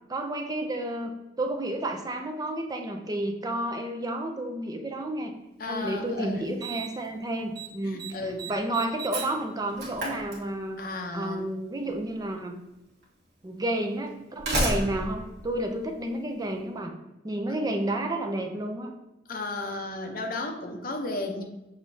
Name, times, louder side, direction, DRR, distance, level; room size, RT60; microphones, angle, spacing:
voice 1, 0.1-1.1 1.4-5.3 5.7-8.0 8.5-10.8 11.1-12.6 13.4-16.9 17.2-18.9, right 1 dB, 20° right, 4 dB, 0.5 m, -31 dB
voice 2, 5.6-6.5 7.8-8.5 10.8-11.4 19.3-21.4, left 2 dB, 55° left, 3 dB, 0.7 m, -34 dB
Slam, 5.8-5.9 6.6-7.1 7.3-7.7 8.0-10.9 12.0-12.1 13.0-13.1 14.1-16.4, right 1 dB, 65° right, 1.4 m, -32 dB
6.2 x 3.1 x 2.7 m, 0.95 s
head